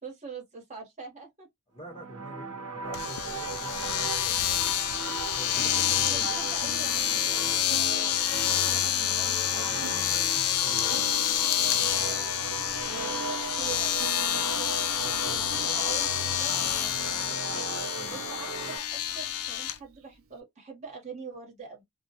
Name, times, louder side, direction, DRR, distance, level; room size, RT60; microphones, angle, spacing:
voice 1, 0.0-1.5 5.4-5.7 6.0-8.1 8.5-9.9 11.9-12.2 12.8-14.8 15.1-17.3 17.7-21.8, right 4 dB, 30° right, 1.0 m, -44 dB
voice 2, 1.7-4.6 5.3-6.3 6.6-6.8 9.6-11.1 11.6-12.0 12.6-12.9 15.0-15.8 16.6-17.3 17.9-18.3, equal, 25° left, 0.9 m, -46 dB
sound 1, 1.9-18.8, right 3 dB, 80° right, 0.9 m, -37 dB
Domestic sounds home sounds, 2.9-19.8, left 12 dB, 75° left, 0.3 m, -28 dB
Plucked string instrument, 3.7-20.4, right 5 dB, 60° right, 0.6 m, -47 dB
2.2 x 2.1 x 2.8 m
head